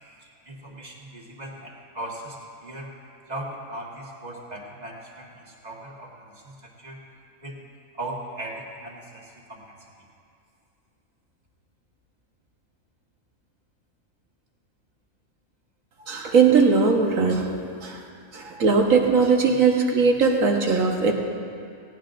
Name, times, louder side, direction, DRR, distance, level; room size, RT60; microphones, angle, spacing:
voice 1, 0.2-2.9 3.3-7.0 7.4-7.6 7.9-9.9, right 1 dB, 30° right, -2 dB, 1.7 m, -38 dB
voice 2, 16.1-17.5 17.8-18.0 18.3-21.1, right 5 dB, 80° right, 1 dB, 1.6 m, -19 dB
17.0 x 17.0 x 2.6 m, 2.4 s
omnidirectional pair, 1.4 m